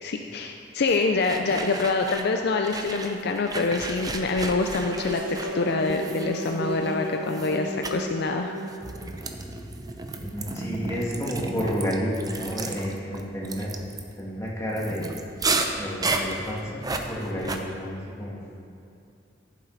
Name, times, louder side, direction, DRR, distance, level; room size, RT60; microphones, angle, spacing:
voice 1, 0.0-8.5, left 3 dB, 60° left, 4 dB, 0.5 m, -26 dB
sound 1, 0.9-2.4 2.6-6.9 7.3-7.6 7.8-8.0 8.7-17.6, right 3 dB, 20° right, 0.6 m, -33 dB
sound 2, 1.3-8.7, right 1 dB, 70° right, 1.7 m, -35 dB
voice 2, 10.2-13.7 14.2-15.1 15.8-18.4, equal, 15° left, -5 dB, 2.0 m, -31 dB
14.0 x 7.4 x 4.0 m, 2.6 s
head